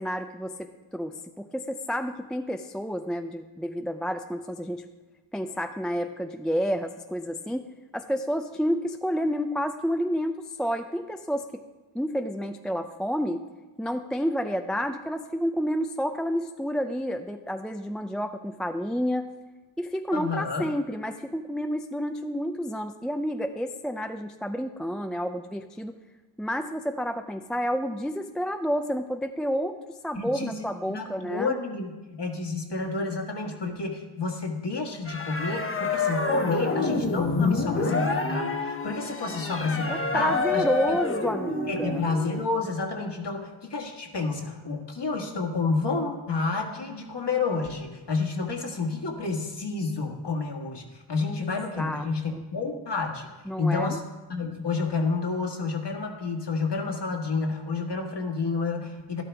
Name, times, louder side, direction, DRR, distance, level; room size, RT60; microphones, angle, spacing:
voice 1, 0.0-4.8 5.3-7.7 7.9-11.5 11.9-13.4 13.8-19.3 19.8-26.0 26.4-31.5 39.9-42.0 51.8-52.0 52.3-52.4 53.5-54.0, equal, ahead, 6 dB, 0.4 m, -30 dB
voice 2, 20.1-20.7 30.1-41.0 41.7-53.3 53.6-54.0 54.3-59.2, left 4 dB, 55° left, 2 dB, 1.7 m, -30 dB
sound 1, 35.1-42.4, left 3 dB, 25° left, 0.9 m, -28 dB
12.0 x 12.0 x 3.4 m, 1.2 s
wide cardioid pair, 70°, 49 cm